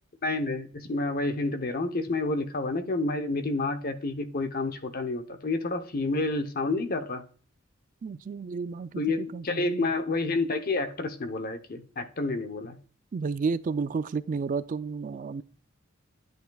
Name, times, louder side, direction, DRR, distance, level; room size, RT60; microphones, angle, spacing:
voice 1, 0.2-7.2 8.9-12.8, left 2 dB, 45° left, 0.8 m, -29 dB
voice 2, 8.0-9.0 9.3-9.9 13.1-15.4, right 4 dB, 40° right, 0.3 m, -31 dB
10.5 x 7.8 x 2.3 m
head